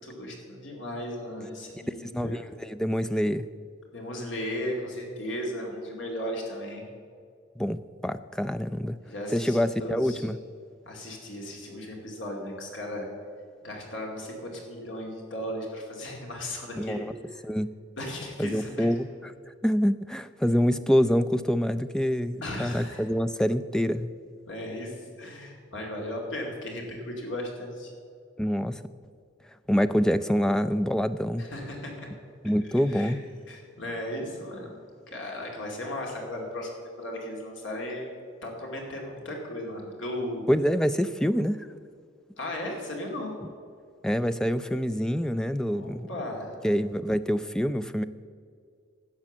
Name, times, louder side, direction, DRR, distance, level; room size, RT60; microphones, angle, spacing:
voice 1, 0.0-2.4 3.9-6.8 9.0-10.3 10.9-13.1 13.6-17.4 18.0-18.9 22.4-23.0 24.5-27.9 31.4-31.9 32.7-33.1 33.5-34.7 35.1-36.7 37.0-38.1 38.4-40.4 42.4-43.3 45.7-46.5, left 1 dB, 70° left, 0 dB, 2.4 m, -36 dB
voice 2, 1.9-3.5 7.6-9.0 9.3-10.4 16.8-17.1 17.4-17.7 18.4-19.3 19.6-24.1 28.4-28.8 29.7-31.4 32.4-33.2 40.5-41.7 44.0-46.1 46.6-48.0, equal, 5° left, 11 dB, 0.3 m, -26 dB
12.0 x 8.8 x 7.2 m, 2.2 s
head